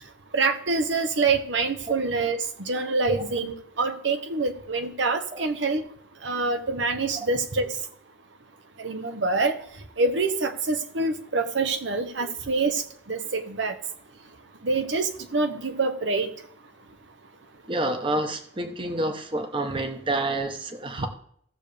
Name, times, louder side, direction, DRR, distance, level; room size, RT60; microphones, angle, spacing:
voice 1, 0.3-5.8 6.2-7.7 8.8-9.5 10.0-12.8 13.1-13.7 14.6-16.3 21.0-21.1, right 3 dB, 85° right, 7 dB, 1.0 m, -26 dB
voice 2, 17.7-21.1, right 2 dB, 25° right, 6 dB, 1.0 m, -28 dB
16.5 x 6.8 x 3.4 m, 0.64 s
head